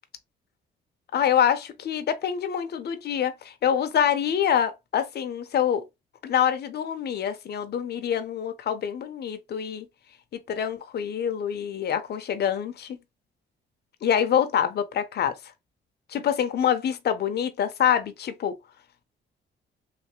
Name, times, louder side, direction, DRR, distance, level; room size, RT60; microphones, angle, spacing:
voice 1, 1.1-5.8 6.2-9.8 10.5-13.0 14.0-15.4 16.1-18.6, left 9 dB, 55° left, 0.7 m, -25 dB
3.3 x 2.6 x 3.1 m
cardioid pair, 90°, 20 cm